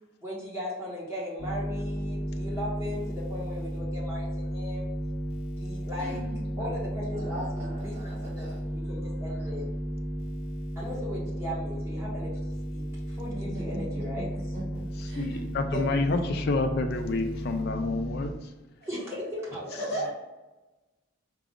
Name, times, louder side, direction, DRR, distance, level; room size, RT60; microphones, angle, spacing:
voice 1, 0.2-4.9 5.4-6.3 6.6-9.7 10.8-12.4 12.7-14.3 15.7-16.3 18.9-20.1, left 1 dB, 10° right, -7 dB, 1.0 m, -37 dB
sound 1, 1.4-18.3, equal, 30° left, 1.0 m, -34 dB
voice 2, 6.0-6.8 7.1-8.6 13.4-14.2 14.5-15.5 19.6-20.1, right 1 dB, 50° right, -6 dB, 1.2 m, -39 dB
voice 3, 15.0-18.3, left 3 dB, 50° left, 5 dB, 0.3 m, -29 dB
4.9 x 2.4 x 3.6 m, 1.1 s
head